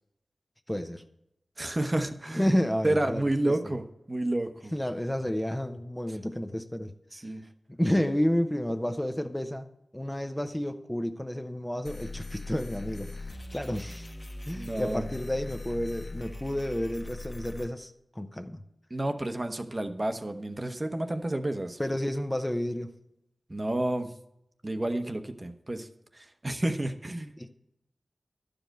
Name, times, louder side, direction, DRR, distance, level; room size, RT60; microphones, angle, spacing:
voice 1, 0.7-1.0 2.3-3.6 4.7-6.9 7.8-9.7 9.9-14.1 14.5-18.6 21.8-23.0 27.4-27.5, equal, 15° left, 0.8 m, -30 dB
voice 2, 1.6-2.5 2.8-4.7 7.1-7.4 14.6-15.1 18.9-21.8 23.5-24.1 24.6-25.9 26.1-27.5, right 1 dB, 35° right, 0.9 m, -30 dB
sound 1, 11.8-17.7, left 2 dB, 45° left, 1.4 m, -40 dB
11.5 x 5.2 x 7.7 m
cardioid pair, 50°, 0 cm